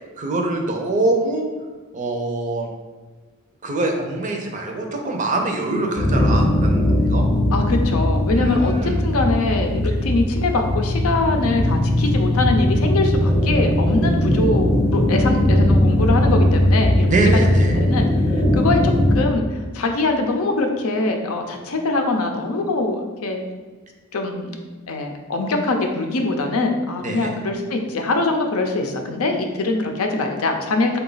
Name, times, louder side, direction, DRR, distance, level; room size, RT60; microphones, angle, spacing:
voice 1, 0.2-1.5 1.9-2.7 3.6-7.3 8.3-9.0 17.1-17.8 27.0-27.3, right 2 dB, 35° right, 2 dB, 0.5 m, -24 dB
sound 1, 6.0-19.2, left 1 dB, 15° left, 0.6 m, -19 dB
voice 2, 7.5-17.5 17.8-18.1 18.5-19.4 19.7-23.4 24.1-31.0, left 2 dB, 80° left, 4 dB, 0.5 m, -23 dB
3.9 x 2.3 x 3.8 m, 1.3 s
head